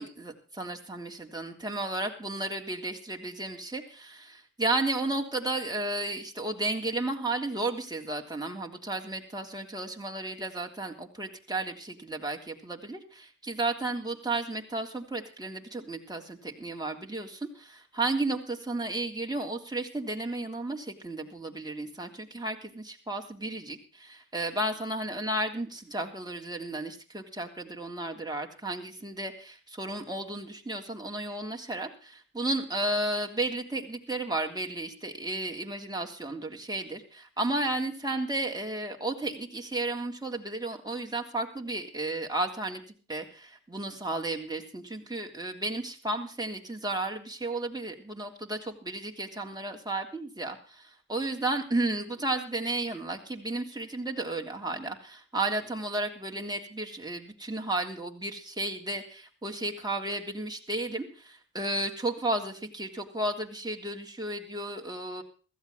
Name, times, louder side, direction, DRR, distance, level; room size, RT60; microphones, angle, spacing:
voice 1, 0.0-42.8 43.1-65.2, right 2 dB, 15° right, 1 dB, 3.3 m, -33 dB
15.5 x 14.5 x 4.0 m, 0.38 s
cardioid pair, 60°, 29 cm